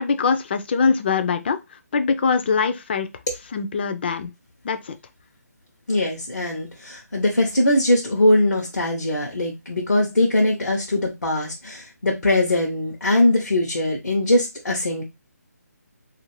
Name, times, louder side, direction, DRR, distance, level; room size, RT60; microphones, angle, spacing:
voice 1, 0.0-1.6 1.9-3.1 3.5-4.3 4.6-5.0, left 5 dB, 40° left, 0.4 m, -22 dB
voice 2, 5.9-15.0, left 1 dB, 85° left, 0.7 m, -21 dB
2.5 x 2.5 x 3.0 m
figure-of-eight pair, 150°, 9 cm